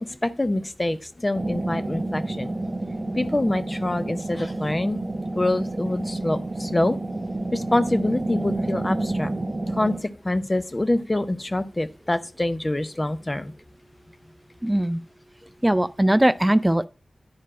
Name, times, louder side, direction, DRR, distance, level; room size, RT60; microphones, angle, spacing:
voice 1, 0.0-2.5 3.1-5.0 5.3-7.0 7.5-9.3 9.7-13.5, left 1 dB, 25° left, 0.7 m, -25 dB
sound 1, 1.3-10.0, right 2 dB, 45° right, 1.1 m, -29 dB
voice 2, 14.6-15.0 15.6-16.9, right 1 dB, 10° right, 0.5 m, -20 dB
10.5 x 4.6 x 4.9 m
wide cardioid pair, 60°, 0 cm